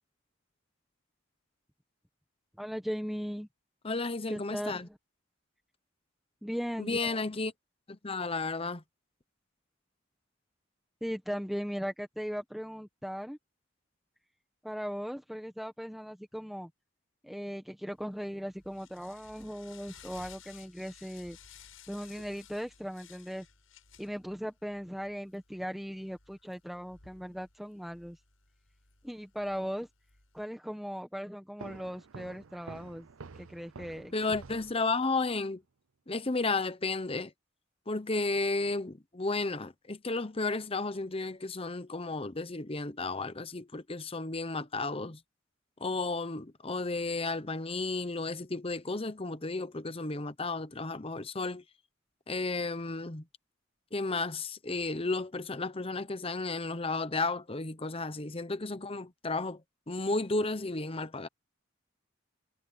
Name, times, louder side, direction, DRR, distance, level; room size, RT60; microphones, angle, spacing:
voice 1, 2.6-3.5 4.3-5.0 6.4-7.2 11.0-13.4 14.6-16.7 17.2-21.4 21.9-23.4 24.0-28.2 29.0-29.9 30.3-33.1 33.3-34.1, equal, ahead, 1.3 m, -38 dB
voice 2, 3.8-4.9 6.8-7.5 7.9-8.8 34.1-35.6 36.1-37.3 37.9-45.2 45.8-51.6 52.3-53.2 53.9-59.6 59.9-61.3, left 3 dB, 25° left, 0.9 m, -33 dB
sound 1, 18.0-30.5, left 7 dB, 80° left, 7.6 m, -57 dB
sound 2, 31.6-35.3, right 4 dB, 85° right, 0.7 m, -49 dB
head